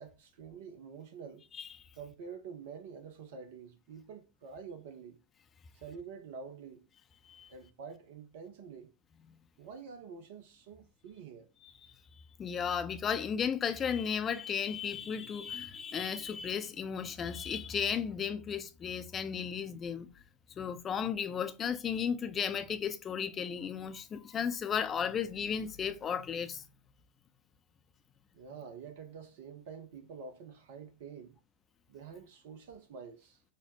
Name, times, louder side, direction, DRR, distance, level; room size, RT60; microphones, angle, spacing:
voice 1, 0.0-1.4 1.9-5.2 5.7-6.9 7.5-8.9 9.6-11.5 28.3-31.4 31.9-33.4, right 6 dB, 50° right, 0.5 m, -47 dB
voice 2, 12.4-20.1 20.6-26.6, left 7 dB, 25° left, 0.5 m, -34 dB
5.4 x 2.0 x 3.0 m
figure-of-eight pair, 90°, 0 cm